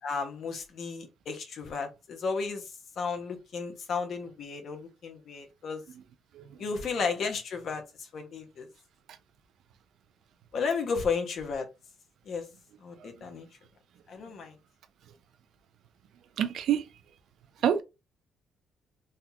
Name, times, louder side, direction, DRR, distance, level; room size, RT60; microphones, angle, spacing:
voice 1, 0.0-5.8 6.6-8.7 10.5-11.7 12.2-12.5 12.8-13.5 14.1-14.6, left 5 dB, 60° left, 1.0 m, -33 dB
voice 2, 16.4-16.9 17.6-17.8, right 9 dB, 75° right, 0.4 m, -28 dB
3.6 x 2.3 x 2.7 m
cardioid pair, 90°, 0 cm